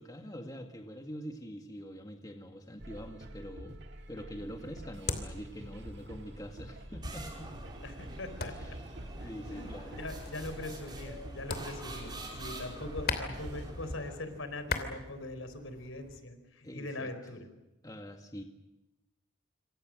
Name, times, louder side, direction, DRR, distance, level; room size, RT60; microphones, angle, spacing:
voice 1, 0.0-3.8 4.1-7.5 8.4-8.9 9.1-10.0 16.6-17.1 17.8-18.4, equal, 20° left, 4 dB, 2.0 m, -44 dB
sound 1, 2.8-13.7, right 1 dB, 60° right, 2.0 m, -47 dB
sound 2, 4.3-16.2, left 4 dB, 50° left, 3.0 m, -42 dB
sound 3, 7.0-14.4, right 1 dB, 20° right, 5.0 m, -46 dB
voice 2, 7.8-8.8 9.2-9.7 10.0-17.5, left 2 dB, 80° left, 9 dB, 4.4 m, -42 dB
27.5 x 25.5 x 6.5 m, 0.99 s
head